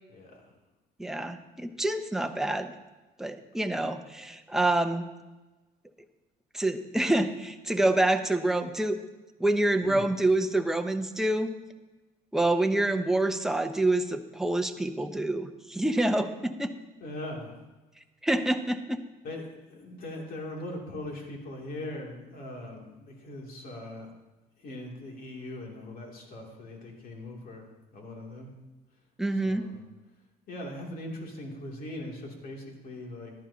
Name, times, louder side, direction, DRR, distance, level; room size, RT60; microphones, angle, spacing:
voice 1, 0.1-0.5 9.8-10.1 17.0-17.5 19.2-24.1 24.6-28.5 29.3-29.8 30.5-33.3, left 1 dB, 60° left, -1 dB, 2.7 m, -40 dB
voice 2, 1.0-2.7 3.2-5.1 6.5-9.0 9.4-11.5 12.3-16.7 18.2-19.0 29.2-29.7, right 2 dB, 5° right, 6 dB, 0.7 m, -27 dB
14.5 x 11.5 x 2.8 m, 1.1 s
cardioid pair, 110°, 17 cm